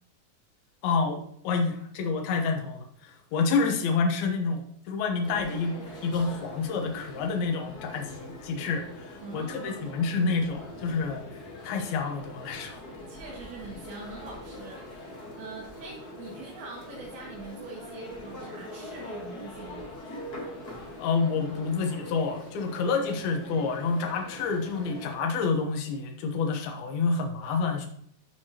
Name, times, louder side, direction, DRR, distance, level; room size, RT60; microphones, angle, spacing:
voice 1, 0.8-11.2 11.6-12.8 21.0-27.9, left 4 dB, 85° left, 3 dB, 2.9 m, -28 dB
sound 1, 5.2-25.1, left 1 dB, 45° left, 1.3 m, -43 dB
voice 2, 9.2-9.9 13.1-19.9, right 3 dB, 80° right, -5 dB, 3.8 m, -43 dB
13.0 x 4.7 x 2.9 m, 0.67 s
omnidirectional pair, 4.2 m